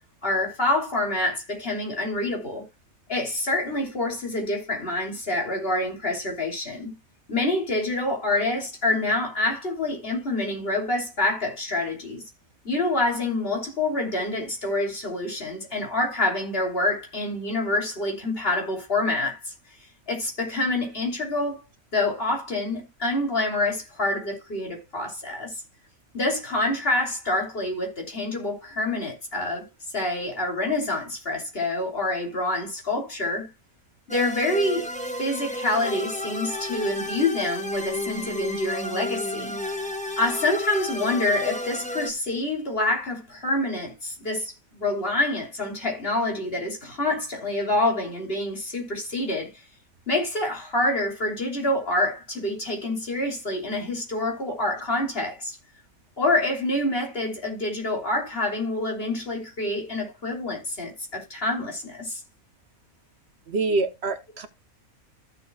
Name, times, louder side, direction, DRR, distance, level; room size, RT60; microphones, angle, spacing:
voice 1, 0.2-2.6 3.1-6.9 7.3-12.2 12.6-19.5 20.1-21.6 21.9-25.5 26.1-29.7 29.9-33.5 34.1-34.9 35.2-39.5 40.2-49.5 50.1-55.5 56.2-62.2, left 2 dB, 45° left, 3.3 m, -27 dB
sound 1, 34.1-42.1, left 1 dB, 5° left, 1.0 m, -32 dB
voice 2, 63.5-64.5, right 3 dB, 55° right, 1.0 m, -26 dB
14.5 x 7.1 x 2.3 m
omnidirectional pair, 1.4 m